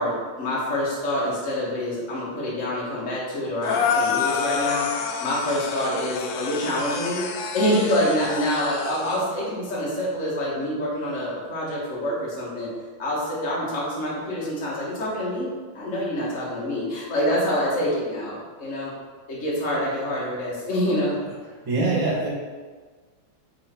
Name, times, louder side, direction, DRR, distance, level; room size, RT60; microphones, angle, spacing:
voice 1, 0.0-7.3 7.5-12.7 13.0-18.9 19.3-21.2, equal, 30° left, -7 dB, 1.5 m, -26 dB
sound 1, 3.6-9.2, left 6 dB, 85° left, 1.4 m, -28 dB
voice 2, 21.6-22.3, right 3 dB, 15° right, -7 dB, 0.7 m, -23 dB
6.4 x 4.0 x 4.5 m, 1.5 s
omnidirectional pair, 3.6 m